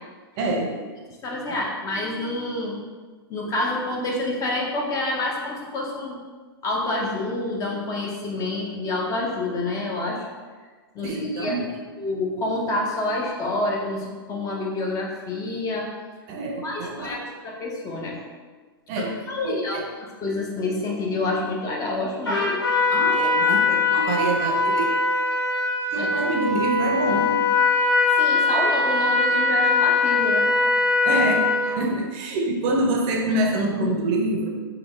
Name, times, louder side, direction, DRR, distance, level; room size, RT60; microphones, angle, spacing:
voice 1, 0.4-0.7 1.5-1.6 11.0-11.6 16.3-17.2 18.9-19.1 19.4-19.8 22.9-24.9 25.9-27.3 31.0-31.5 31.8-34.5, right 1 dB, 45° right, 1 dB, 0.6 m, -26 dB
voice 2, 1.2-2.8 3.3-6.2 6.6-10.2 10.9-11.6 12.0-15.9 16.6-18.2 19.0-22.6 24.0-24.1 26.0-26.3 28.2-30.5, left 2 dB, 25° left, -2 dB, 0.6 m, -28 dB
Trumpet, 22.2-31.8, left 3 dB, 90° left, 1.3 m, -21 dB
3.3 x 2.3 x 3.1 m, 1.4 s
hypercardioid pair, 120°, 13 cm